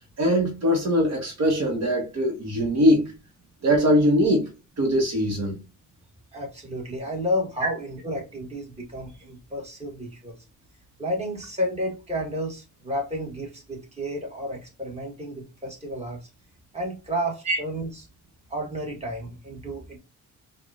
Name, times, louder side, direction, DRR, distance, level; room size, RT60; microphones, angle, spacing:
voice 1, 0.2-3.1 3.6-4.5 4.8-5.6 17.5-17.6, equal, 60° right, 1.3 m, -21 dB
voice 2, 6.3-10.3 11.0-16.3 16.7-18.0 18.5-20.0, equal, 20° right, 1.7 m, -31 dB
4.7 x 2.5 x 2.4 m
cardioid pair, 90°, 30 cm